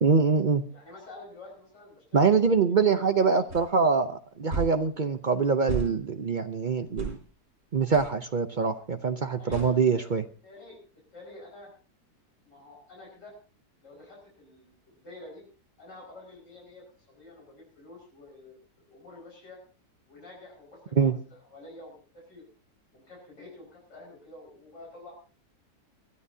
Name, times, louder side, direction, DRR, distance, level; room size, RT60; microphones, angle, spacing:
voice 1, 0.0-0.6 2.1-7.2 7.7-10.2 21.0-21.1, right 5 dB, 70° right, 8 dB, 0.4 m, -24 dB
voice 2, 0.7-3.4 9.4-10.1 10.4-10.8 11.1-11.7 12.4-13.3 13.8-15.5 15.8-18.6 18.9-19.6 20.1-22.4 22.9-25.1, left 2 dB, 85° left, -3 dB, 6.0 m, -48 dB
sound 1, 3.5-3.6 4.5-4.8 5.7-5.9 7.0-7.2 7.9-8.1 9.5-9.7, right 3 dB, 40° right, 4.1 m, -32 dB
22.5 x 13.5 x 2.7 m, 0.37 s
omnidirectional pair, 1.8 m